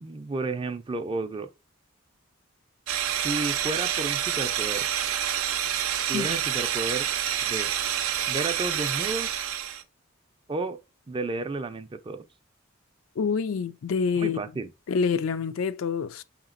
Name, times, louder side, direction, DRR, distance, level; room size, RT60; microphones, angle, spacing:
voice 1, 0.0-1.5 3.2-4.9 6.1-7.1 7.4-7.7 8.3-9.3 10.5-10.8 11.1-12.2 14.2-14.7, right 3 dB, 25° right, 0.4 m, -32 dB
sound 1, 2.9-9.8, right 10 dB, 90° right, 0.5 m, -28 dB
voice 2, 13.2-14.4 14.9-16.2, left 5 dB, 70° left, 0.4 m, -27 dB
5.6 x 2.9 x 2.4 m
head